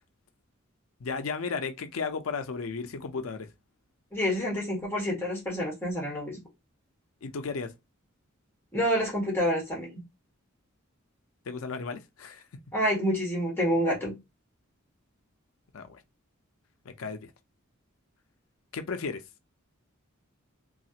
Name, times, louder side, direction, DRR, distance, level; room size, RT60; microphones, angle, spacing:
voice 1, 1.0-3.5 7.2-7.7 11.5-12.4 15.7-16.0 16.9-17.3 18.7-19.2, left 4 dB, 80° left, 0.5 m, -34 dB
voice 2, 4.1-6.4 8.7-9.9 12.7-14.1, equal, 10° left, 1.4 m, -28 dB
3.2 x 2.3 x 2.8 m
head